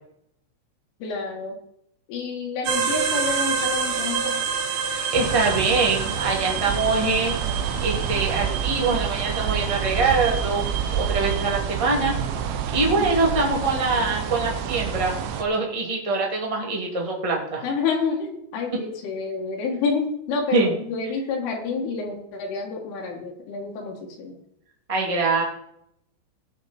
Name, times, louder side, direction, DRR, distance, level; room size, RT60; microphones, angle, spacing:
voice 1, 1.0-1.6 2.1-4.4 13.0-13.1 17.6-24.4, left 4 dB, 70° left, -1 dB, 4.4 m, -28 dB
sound 1, 2.6-11.6, right 6 dB, 55° right, 2.5 m, -29 dB
voice 2, 4.8-10.7 10.9-12.1 12.7-17.6 20.5-20.7 24.9-25.4, right 3 dB, 35° right, -2 dB, 0.5 m, -24 dB
sound 2, 5.1-15.4, right 8 dB, 80° right, 3.6 m, -28 dB
19.5 x 6.6 x 4.4 m, 0.74 s
omnidirectional pair, 5.9 m